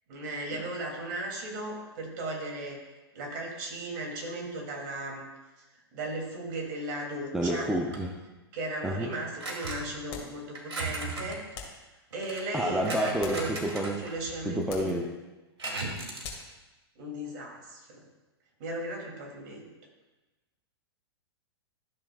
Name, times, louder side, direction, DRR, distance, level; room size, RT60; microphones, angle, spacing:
voice 1, 0.1-2.8 3.1-5.3 5.6-5.7 5.9-7.7 8.5-11.4 12.1-13.5 14.0-15.0 16.9-18.0 18.6-19.7, right 1 dB, 50° right, 0 dB, 3.1 m, -36 dB
voice 2, 7.3-8.2 8.8-9.1 12.5-14.1 14.4-15.2, right 1 dB, 5° right, 1 dB, 0.6 m, -29 dB
sound 1, 7.9-8.2 9.3-10.0 10.6-11.4 12.1-14.5 14.9-15.0 15.6-16.4, right 2 dB, 85° right, 2.0 m, -37 dB
sound 2, 10.1-10.4 11.5-11.9 12.9-13.8 14.7-15.0 16.2-16.6, left 5 dB, 35° left, 2.1 m, -43 dB
13.0 x 7.1 x 2.5 m, 1.1 s
hypercardioid pair, 115°, 14 cm